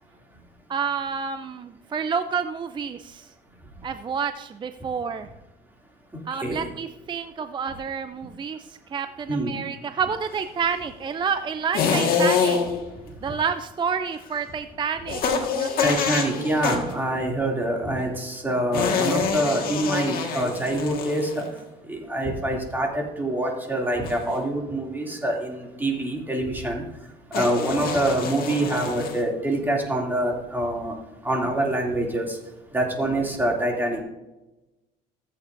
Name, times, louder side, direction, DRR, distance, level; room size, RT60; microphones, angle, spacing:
voice 1, 0.7-3.3 3.8-5.3 6.3-12.6 13.2-15.7, right 6 dB, 30° right, 9 dB, 0.5 m, -29 dB
sound 1, 11.7-12.9 15.1-17.0 18.7-21.6 24.0-24.4 27.3-29.2, left 6 dB, 60° left, 1.7 m, -26 dB
voice 2, 15.8-21.3 21.9-26.8 27.3-30.9 31.2-32.2 32.7-34.0, right 1 dB, 10° right, -1 dB, 2.7 m, -25 dB
14.5 x 8.5 x 2.6 m, 1.0 s
cardioid pair, 110°, 17 cm